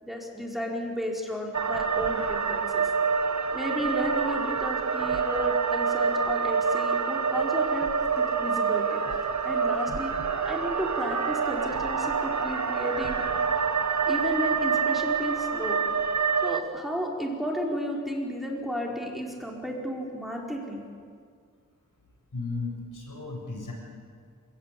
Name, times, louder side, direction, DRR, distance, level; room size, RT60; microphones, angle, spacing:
voice 1, 0.0-2.9 3.5-7.9 8.2-8.8 9.4-10.1 10.4-13.2 14.1-15.8 16.4-20.8, equal, ahead, -1 dB, 4.9 m, -33 dB
sound 1, 1.5-16.6, right 5 dB, 60° right, 1.3 m, -27 dB
voice 2, 22.3-23.7, left 3 dB, 75° left, -1 dB, 7.2 m, -35 dB
27.5 x 17.5 x 8.7 m, 2.1 s
wide cardioid pair, 50°, 32 cm